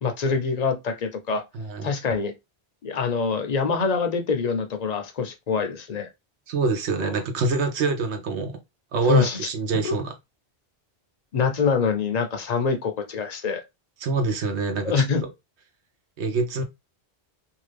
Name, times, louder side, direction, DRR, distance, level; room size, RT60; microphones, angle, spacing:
voice 1, 0.0-1.4 1.8-2.3 2.8-6.1 7.0-7.1 9.1-9.5 9.8-9.9 11.3-13.6 14.8-15.2, left 5 dB, 50° left, 0.5 m, -25 dB
voice 2, 1.5-1.9 6.5-8.6 8.9-10.1 14.0-15.0 16.2-16.6, right 3 dB, 85° right, 1.0 m, -25 dB
2.6 x 2.4 x 3.2 m
omnidirectional pair, 1.1 m